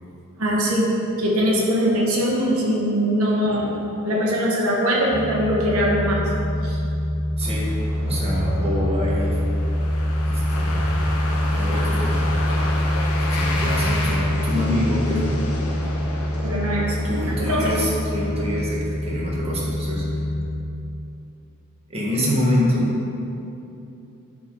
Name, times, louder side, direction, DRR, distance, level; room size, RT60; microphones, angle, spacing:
voice 1, 0.4-0.9 1.2-3.8 4.0-6.2 6.6-6.8 15.8-15.9 16.4-17.0 17.5-17.7, equal, 70° right, -4 dB, 1.4 m, -21 dB
sound 1, 5.1-20.5, left 1 dB, 10° left, 0.5 m, -24 dB
sound 2, 7.4-18.6, left 2 dB, 90° left, 1.0 m, -33 dB
voice 2, 7.4-7.7 8.0-9.4 10.2-11.1 11.5-12.5 13.3-15.4 17.0-20.2 21.9-22.9, equal, 30° right, -5 dB, 1.6 m, -25 dB
9.2 x 5.2 x 3.9 m, 2.9 s
head